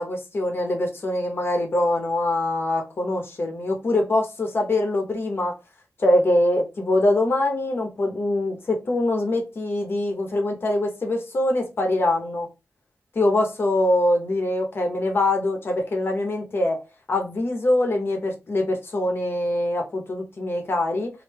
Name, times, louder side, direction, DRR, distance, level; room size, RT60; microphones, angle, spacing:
voice 1, 0.0-5.5 6.0-12.5 13.1-16.8 17.1-21.1, left 1 dB, 50° left, 3 dB, 0.9 m, -23 dB
3.2 x 2.7 x 3.3 m, 0.28 s
wide cardioid pair, 135°, 5 cm